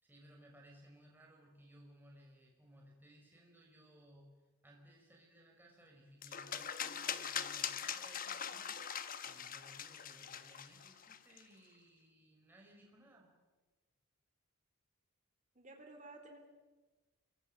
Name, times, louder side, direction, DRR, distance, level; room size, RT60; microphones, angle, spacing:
voice 1, 0.0-8.8 9.3-13.3, right 1 dB, 10° right, -1 dB, 5.3 m, -61 dB
sound 1, 6.2-11.4, left 8 dB, 40° left, 1.0 m, -42 dB
voice 2, 15.6-16.4, right 2 dB, 35° right, 4 dB, 3.9 m, -53 dB
27.0 x 23.0 x 6.8 m, 1.2 s
head